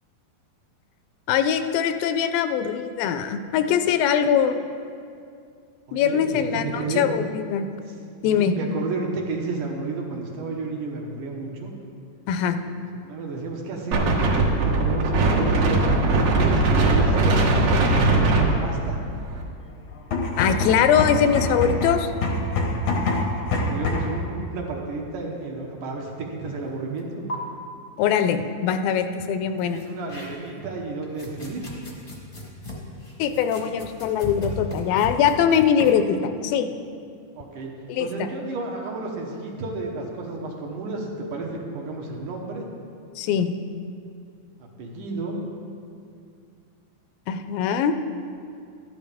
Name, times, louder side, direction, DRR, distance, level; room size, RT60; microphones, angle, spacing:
voice 1, 1.3-4.6 5.9-7.7 8.2-8.5 12.3-12.6 20.4-22.1 28.0-29.8 33.2-36.7 37.9-38.3 43.2-43.5 47.3-47.9, left 8 dB, 85° left, 8 dB, 2.3 m, -22 dB
voice 2, 5.9-7.1 7.7-7.8 8.2-11.7 12.7-14.2 14.6-17.9 18.2-19.0 23.3-27.2 29.6-31.6 37.4-37.7 38.0-42.6 44.8-45.4, right 3 dB, 70° right, 0 dB, 2.5 m, -32 dB
Wind, 13.9-19.4, right 2 dB, 55° right, 2.3 m, -20 dB
sound 1, 20.0-24.2, left 2 dB, 70° left, 1.2 m, -25 dB
sound 2, 27.0-27.1 27.3-27.4 29.6-30.6 31.0-36.0, left 1 dB, 35° left, 0.8 m, -36 dB
13.5 x 11.0 x 3.5 m, 2.4 s
omnidirectional pair, 4.1 m